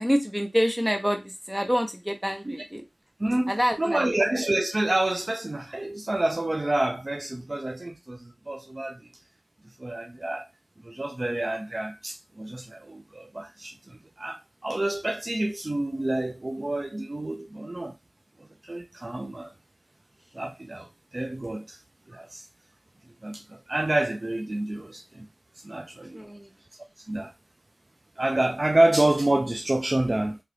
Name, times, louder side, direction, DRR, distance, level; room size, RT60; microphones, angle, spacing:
voice 1, 0.0-2.8 3.5-4.2 26.1-26.5, equal, 10° right, 0.7 m, -27 dB
voice 2, 3.2-3.5 3.8-9.1 9.6-10.5 10.8-17.9 18.4-19.5 20.3-21.8 22.1-22.5 23.2-25.3 25.6-26.2 27.0-27.3 28.2-30.4, right 1 dB, 35° right, 0.4 m, -28 dB
2.9 x 2.5 x 3.2 m
wide cardioid pair, 75°, 0 cm